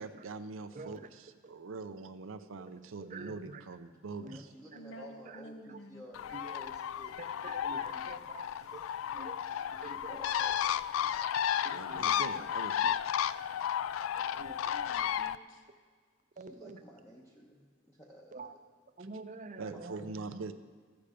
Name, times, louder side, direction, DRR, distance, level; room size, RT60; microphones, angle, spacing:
voice 1, 0.0-4.5 11.6-13.0 19.6-20.5, right 4 dB, 80° right, 9 dB, 0.6 m, -43 dB
voice 2, 0.7-1.1 3.0-3.6 4.2-4.4 4.7-4.8 5.3-5.4 5.7-5.8 6.3-6.6 7.2-8.8 9.1-10.2 11.6-12.1 12.3-12.4 14.4-14.6 16.4-16.8 18.3-18.5 19.0-20.3, right 3 dB, 40° right, 9 dB, 0.6 m, -47 dB
voice 3, 4.2-7.2 7.9-8.0 8.6-9.0 10.1-11.1 16.3-18.6 19.7-19.8, equal, 15° left, -3 dB, 0.9 m, -54 dB
voice 4, 4.7-6.0 14.6-15.7, equal, 65° left, 6 dB, 0.8 m, -50 dB
Bird, 6.1-15.4, left 9 dB, 85° left, 0.3 m, -33 dB
13.5 x 8.6 x 5.0 m, 1.5 s
head